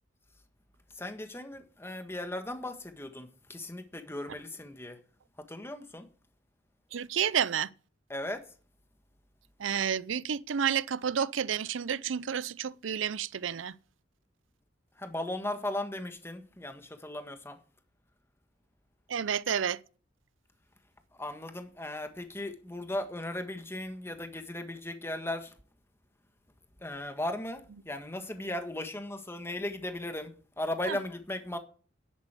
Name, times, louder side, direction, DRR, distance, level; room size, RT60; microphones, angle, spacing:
voice 1, 0.9-5.0 5.4-6.1 8.1-8.5 14.9-17.6 21.1-25.5 26.8-31.6, left 1 dB, 15° left, 1.5 m, -37 dB
voice 2, 6.9-7.7 9.6-13.7 19.1-19.8 30.9-31.0, right 8 dB, 85° right, 0.5 m, -30 dB
11.0 x 8.2 x 8.1 m
head